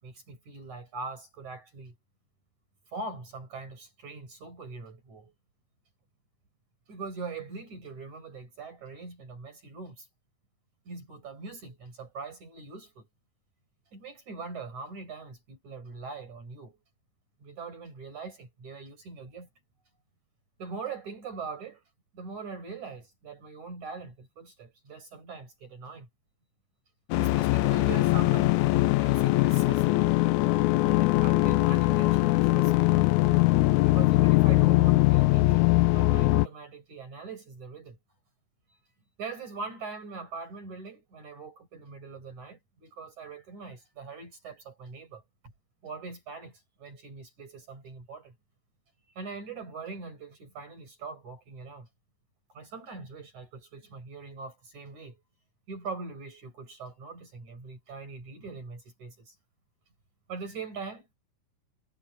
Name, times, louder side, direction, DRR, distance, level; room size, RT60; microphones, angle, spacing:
voice 1, 0.0-2.0 2.9-5.3 6.9-10.1 10.9-13.1 13.9-16.8 17.4-19.5 20.6-21.8 22.1-26.1 27.2-28.6 29.0-30.0 30.8-33.1 33.8-38.0 39.2-45.2 45.8-48.4 49.2-51.9 52.5-55.2 55.7-59.4 60.3-61.1, right 4 dB, 55° right, 7.0 m, -42 dB
sound 1, 27.1-36.5, left 19 dB, 80° left, 1.7 m, -22 dB
omnidirectional pair, 4.0 m